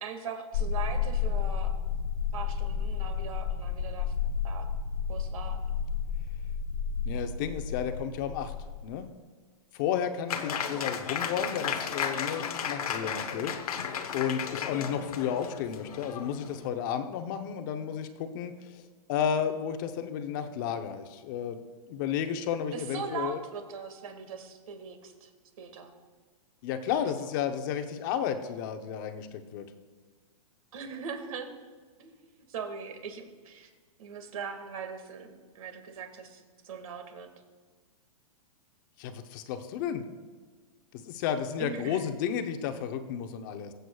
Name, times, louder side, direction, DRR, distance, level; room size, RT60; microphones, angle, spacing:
voice 1, 0.0-1.7 2.3-4.1 4.4-4.7 5.1-5.6 22.7-25.3 25.6-25.9 26.9-27.0 30.7-31.5 32.0-32.1 32.5-33.7 34.0-37.3 41.6-42.1, right 6 dB, 70° right, 6 dB, 2.0 m, -40 dB
sound 1, 0.5-9.1, left 7 dB, 60° left, 1.0 m, -31 dB
voice 2, 7.0-8.5 8.8-9.1 9.7-13.6 14.1-18.8 19.1-21.6 21.9-23.4 26.6-29.7 39.0-40.0 40.9-43.7, left 8 dB, 35° left, 7 dB, 0.8 m, -32 dB
Applause, 10.3-16.7, left 7 dB, 90° left, 1.0 m, -34 dB
23.0 x 7.9 x 2.3 m, 1.5 s
hypercardioid pair, 160°, 18 cm